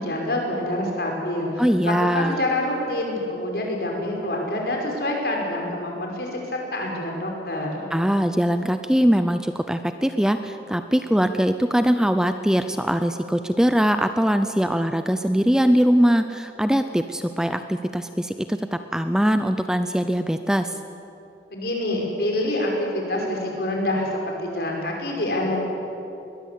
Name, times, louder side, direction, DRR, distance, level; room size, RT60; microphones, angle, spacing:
voice 1, 0.0-7.8 21.5-25.6, left 1 dB, 60° left, 0 dB, 5.4 m, -26 dB
voice 2, 1.6-2.4 7.9-20.8, equal, 5° right, 9 dB, 0.5 m, -21 dB
21.5 x 21.0 x 8.4 m, 2.9 s
head